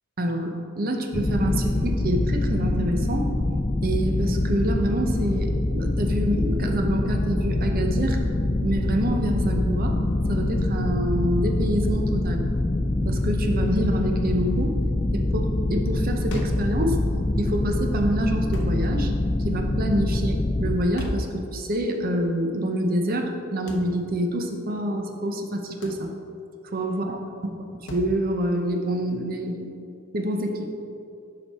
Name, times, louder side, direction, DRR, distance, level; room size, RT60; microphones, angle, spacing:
voice 1, 0.2-3.3 3.8-8.2 8.6-10.0 10.3-12.4 13.0-14.8 15.1-17.0 17.4-19.1 19.4-26.1 26.7-27.6 27.9-29.8 30.1-30.7, right 1 dB, 45° right, 4 dB, 0.7 m, -27 dB
sound 1, 1.1-20.8, left 1 dB, 15° left, 0.3 m, -24 dB
sound 2, 16.3-16.7 18.5-18.8 21.0-21.3 23.7-23.9 25.8-26.1 27.9-28.1, left 1 dB, 55° left, 0.8 m, -32 dB
7.4 x 5.1 x 4.2 m, 2.7 s
head